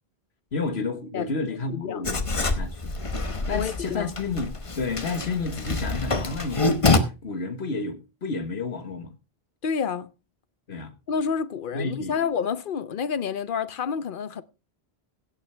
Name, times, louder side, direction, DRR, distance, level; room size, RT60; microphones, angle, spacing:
voice 1, 0.5-2.9 3.5-9.1 10.7-10.9 11.7-12.2, left 3 dB, 85° left, 1.6 m, -31 dB
voice 2, 1.7-2.1 3.5-4.1 9.6-10.1 11.1-14.4, left 6 dB, 60° left, 0.9 m, -29 dB
Writing, 2.0-7.0, left 3 dB, 30° left, 1.1 m, -26 dB
16.0 x 8.8 x 3.3 m
omnidirectional pair, 1.0 m